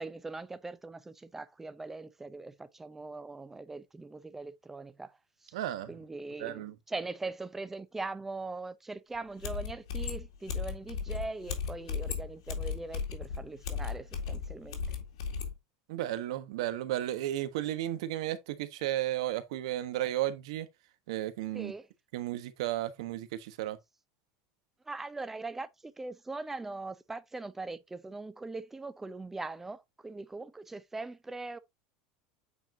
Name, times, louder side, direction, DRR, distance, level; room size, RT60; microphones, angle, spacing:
voice 1, 0.0-5.2 5.4-5.5 5.9-15.0 21.5-21.9 24.9-31.6, right 3 dB, 10° right, 0.6 m, -41 dB
voice 2, 5.5-5.9 6.4-6.7 15.9-20.7 21.1-21.7 22.1-23.8, right 13 dB, 75° right, 1.2 m, -33 dB
sound 1, 9.1-9.2 9.4-15.5, left 6 dB, 85° left, 2.1 m, -36 dB
8.5 x 4.5 x 2.6 m
supercardioid pair, 145°, 3 cm